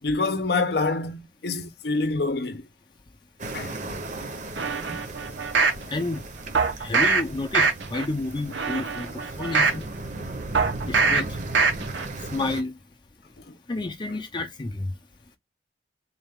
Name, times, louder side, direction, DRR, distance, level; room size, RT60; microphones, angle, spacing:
voice 1, 0.0-2.7 3.5-3.8 13.5-13.6, left 3 dB, 60° left, 0.7 m, -26 dB
sound 1, 3.4-12.6, right 2 dB, 45° right, 0.7 m, -36 dB
sound 2, 4.6-5.8 6.5-7.2 7.5-8.0 8.5-9.8 10.5-11.2 11.5-12.0 12.4-12.5, right 4 dB, 85° right, 0.7 m, -23 dB
voice 2, 5.9-6.2 6.8-9.1 9.4-9.9 10.8-11.4 12.3-12.7 13.7-14.9, left 2 dB, 25° left, 0.5 m, -30 dB
4.0 x 2.3 x 3.4 m
head